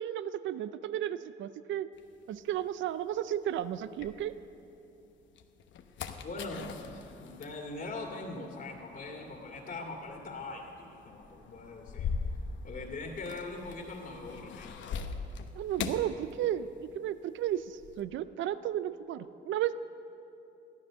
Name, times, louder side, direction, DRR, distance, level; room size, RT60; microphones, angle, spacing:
voice 1, 0.0-1.9 2.3-4.4 15.5-19.7, right 11 dB, 75° right, 15 dB, 0.5 m, -33 dB
sound 1, 2.0-4.7 5.2-17.0 17.2-18.0, left 5 dB, 70° left, 1.0 m, -42 dB
voice 2, 6.2-12.1 12.6-14.9, left 2 dB, 45° left, -1 dB, 2.3 m, -41 dB
14.0 x 12.0 x 6.4 m, 2.8 s
cardioid pair, 90°, 20 cm